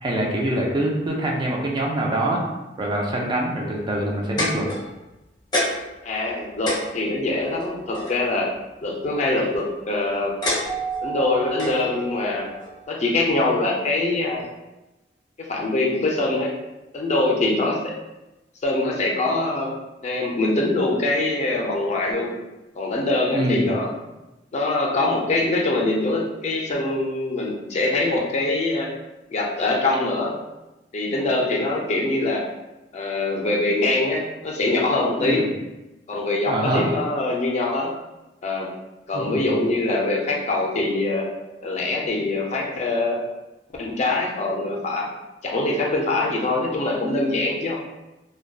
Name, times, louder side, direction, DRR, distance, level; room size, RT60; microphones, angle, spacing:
voice 1, 0.0-2.5 2.8-4.7 23.3-23.7 35.2-35.5 36.5-36.9 39.1-39.4, right 1 dB, 25° right, -2 dB, 0.3 m, -24 dB
sound 1, 4.0-5.1 5.5-6.0 6.3-6.4 6.6-8.2 9.3-9.7 10.4-11.0 11.6-11.8 12.6-12.7, left 1 dB, 25° left, 0.8 m, -26 dB
voice 2, 6.0-8.5 8.8-10.3 11.0-12.5 12.9-14.5 15.4-16.5 16.9-17.9 18.6-19.7 20.0-22.4 22.7-23.9 24.5-28.9 29.3-30.3 30.9-32.4 32.9-35.5 36.1-37.9 38.4-38.7 39.1-41.3 41.6-43.2 43.8-45.1 45.4-47.8, left 2 dB, 40° left, -1 dB, 0.4 m, -23 dB
Keyboard (musical), 10.6-12.9, right 6 dB, 70° right, 0.9 m, -33 dB
2.5 x 2.1 x 2.2 m, 1.0 s
head